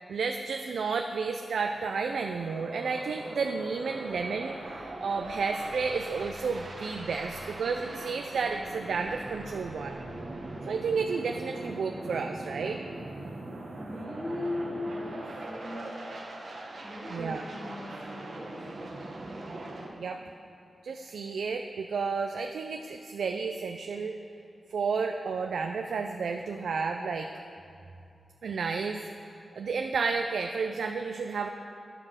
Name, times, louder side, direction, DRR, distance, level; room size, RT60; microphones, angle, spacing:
voice 1, 0.1-10.0 10.7-12.8 17.1-17.4 20.0-20.2 20.8-24.2 24.7-27.3 28.4-29.0 29.6-31.5, right 5 dB, 90° right, 5 dB, 0.3 m, -31 dB
sound 1, 1.5-19.9, right 2 dB, 70° right, 1.1 m, -41 dB
sound 2, 4.1-10.5, left 1 dB, 50° left, 1.6 m, -52 dB
voice 2, 13.8-16.0 16.8-18.7, left 2 dB, 10° left, -5 dB, 1.1 m, -38 dB
10.5 x 4.9 x 5.7 m, 2.6 s
wide cardioid pair, 90°, 0 cm